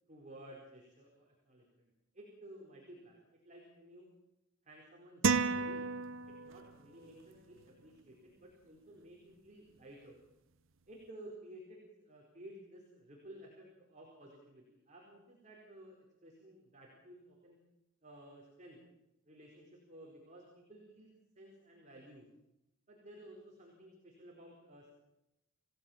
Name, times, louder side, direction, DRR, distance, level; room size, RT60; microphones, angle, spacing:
voice 1, 0.1-4.1 4.6-5.8 6.2-10.2 10.9-17.6 18.0-18.8 19.2-22.3 22.9-24.9, right 1 dB, 35° right, -2 dB, 4.6 m, -55 dB
sound 1, 5.2-6.8, right 4 dB, 65° right, 1.0 m, -32 dB
28.0 x 17.0 x 7.3 m, 0.92 s
head